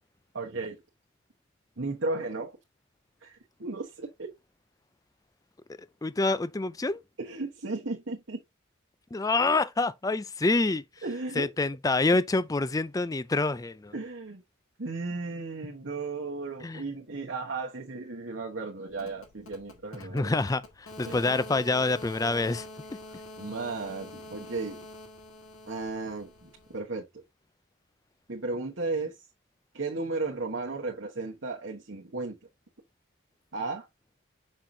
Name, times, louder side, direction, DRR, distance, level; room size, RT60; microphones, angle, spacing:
voice 1, 0.3-0.8 1.8-2.6 3.2-4.3 7.2-8.4 11.0-11.5 13.9-14.4 14.8-20.4 21.0-21.2 23.4-24.8 25.7-27.1 28.3-29.2 29.7-32.4 33.5-33.9, right 3 dB, 60° right, 1.2 m, -35 dB
voice 2, 6.0-7.0 9.1-10.8 11.4-13.9 16.6-16.8 20.1-22.7, left 3 dB, 15° left, 0.4 m, -27 dB
sound 1, 18.9-26.8, left 1 dB, 75° left, 1.8 m, -46 dB
6.4 x 5.8 x 2.7 m
head